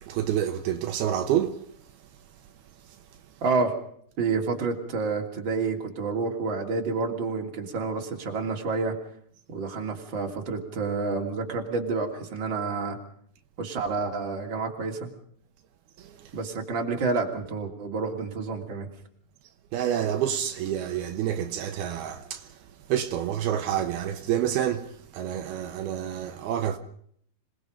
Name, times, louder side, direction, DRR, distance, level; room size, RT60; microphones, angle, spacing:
voice 1, 0.0-1.6 16.0-16.3 19.7-22.6 22.9-26.8, right 10 dB, 80° right, 3.0 m, -28 dB
voice 2, 3.4-3.7 4.2-9.0 9.5-13.0 13.6-15.1 16.3-18.9, right 4 dB, 30° right, 3.2 m, -29 dB
26.5 x 20.0 x 5.2 m
omnidirectional pair, 4.5 m